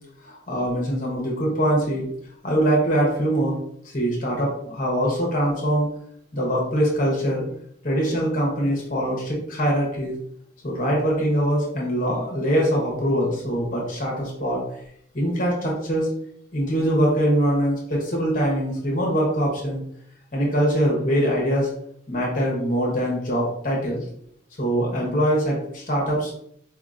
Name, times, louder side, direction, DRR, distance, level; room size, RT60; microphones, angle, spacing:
voice 1, 0.2-2.1 2.4-3.6 3.8-5.9 6.3-7.4 7.8-10.1 10.6-14.8 15.1-16.1 16.5-19.8 20.3-21.7 22.1-24.0 24.6-26.3, equal, 45° left, -3 dB, 1.0 m, -23 dB
4.7 x 2.8 x 2.5 m, 0.70 s
head